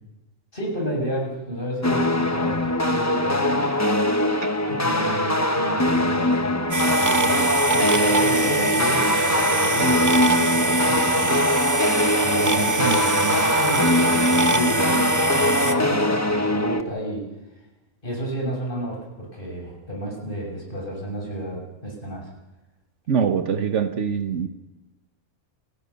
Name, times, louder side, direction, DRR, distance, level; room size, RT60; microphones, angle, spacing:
voice 1, 0.5-3.7 4.7-11.5 12.2-17.2 18.0-22.3, right 1 dB, 45° left, 0 dB, 6.6 m, -31 dB
sound 1, 1.8-16.8, left 1 dB, 15° left, 1.2 m, -22 dB
sound 2, 6.7-15.7, right 3 dB, 15° right, 1.0 m, -23 dB
voice 2, 23.1-24.5, right 7 dB, 70° right, 9 dB, 1.4 m, -23 dB
29.0 x 16.5 x 6.9 m, 1.0 s
omnidirectional pair, 1.3 m